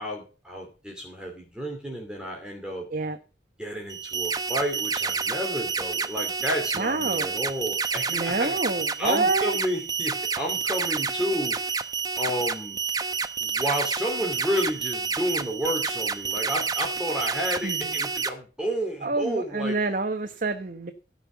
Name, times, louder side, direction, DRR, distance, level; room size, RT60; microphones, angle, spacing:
voice 1, 0.0-2.9 3.6-8.5 9.0-11.6 12.2-12.8 13.4-19.8, equal, 5° right, 0 dB, 2.5 m, -31 dB
sound 1, 3.9-18.3, right 5 dB, 20° right, 0.8 m, -29 dB
voice 2, 6.8-7.4 8.1-9.6 17.6-17.9 19.0-20.9, right 3 dB, 45° right, 7 dB, 1.1 m, -27 dB
16.0 x 5.6 x 7.1 m, 0.34 s
head